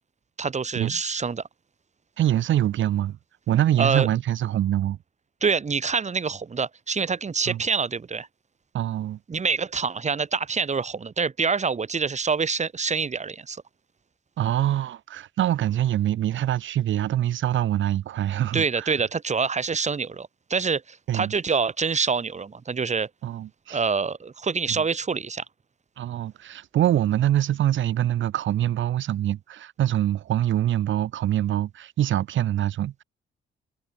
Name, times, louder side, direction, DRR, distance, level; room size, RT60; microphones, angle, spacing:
voice 1, 0.4-1.4 3.8-4.1 5.4-8.3 9.3-13.6 18.5-23.1 23.7-25.4, right 5 dB, 35° right, 5.2 m, -26 dB
voice 2, 2.2-3.2 3.5-5.0 7.5-7.6 8.7-9.2 14.4-18.9 21.1-21.3 23.2-23.8 24.7-24.8 26.0-33.0, right 12 dB, 75° right, 4.0 m, -24 dB
cardioid pair, 90°, 20 cm